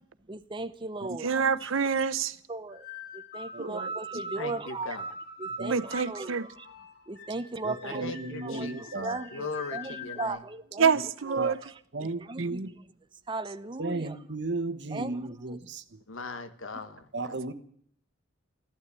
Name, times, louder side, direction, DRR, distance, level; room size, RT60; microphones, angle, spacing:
voice 1, 0.3-1.3 1.6-1.7 2.5-2.8 3.3-5.0 5.4-6.4 7.1-8.0 8.4-9.5 9.7-10.9 11.3-11.5 12.3-12.6 13.3-14.0 14.9-15.1, right 3 dB, 25° right, 0.7 m, -36 dB
voice 2, 1.2-2.4 3.6-3.9 5.7-6.5 10.8-11.6 12.4-12.5, right 6 dB, 85° right, 0.8 m, -27 dB
sound 1, 2.7-10.3, equal, 55° left, 2.6 m, -42 dB
voice 3, 4.3-5.1 7.8-10.4 12.4-12.6 16.1-17.4, left 3 dB, 75° left, 1.3 m, -40 dB
voice 4, 7.6-9.2 11.4-11.5 11.9-12.8 13.8-16.0 17.1-17.5, right 2 dB, 60° right, 1.2 m, -35 dB
14.5 x 12.0 x 8.2 m
head